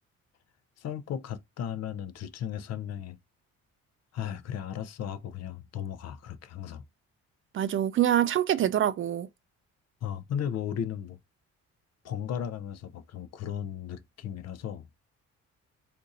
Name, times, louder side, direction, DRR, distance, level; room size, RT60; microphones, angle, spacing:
voice 1, 0.8-3.2 4.1-6.8 10.0-11.2 12.0-14.9, left 9 dB, 55° left, 0.5 m, -35 dB
voice 2, 7.5-9.3, right 11 dB, 45° right, 0.4 m, -25 dB
2.6 x 2.5 x 4.0 m
cardioid pair, 90°, 30 cm